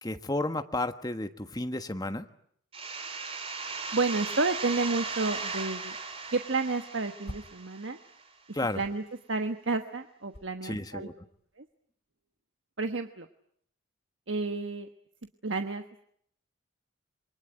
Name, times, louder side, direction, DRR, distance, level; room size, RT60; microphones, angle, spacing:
voice 1, 0.0-2.3 8.5-8.8 10.6-11.1, left 2 dB, 20° left, 8 dB, 1.4 m, -32 dB
sound 1, 2.7-8.2, right 4 dB, 30° right, 3.2 m, -37 dB
voice 2, 3.9-6.0 6.3-8.0 8.7-9.0 9.3-11.1 11.6-11.7 12.8-13.3 14.3-14.9 15.4-16.0, right 3 dB, 70° right, 7 dB, 1.3 m, -31 dB
sound 2, 7.2-7.7 8.0-11.7, equal, 50° left, 2.6 m, -50 dB
28.0 x 23.0 x 9.2 m, 0.69 s
head